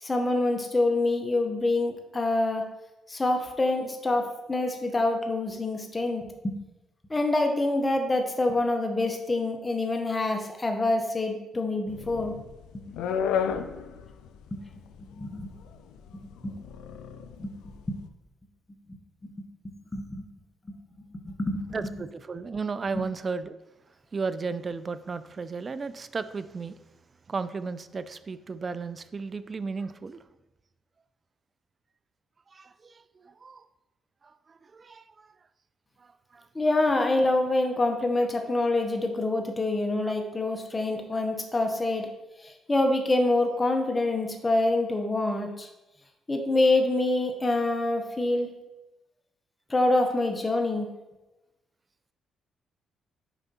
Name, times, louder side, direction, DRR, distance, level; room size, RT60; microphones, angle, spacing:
voice 1, 0.0-2.6 3.1-6.6 7.1-12.3 14.5-14.6 15.2-15.5 16.1-16.5 17.4-17.5 17.9-18.0 19.2-19.3 19.9-20.2 21.2-21.9 36.5-42.1 42.4-45.7 46.3-48.5 49.7-50.9, left 2 dB, 20° left, 4 dB, 0.8 m, -26 dB
sound 1, 11.9-18.0, left 7 dB, 85° left, 0.4 m, -33 dB
voice 2, 21.7-23.6 24.1-26.8 27.3-30.2 32.5-33.6 34.2-35.3 36.0-36.5, right 4 dB, 35° right, 14 dB, 0.3 m, -34 dB
6.9 x 4.9 x 2.8 m, 1.0 s
cardioid pair, 90°, 0 cm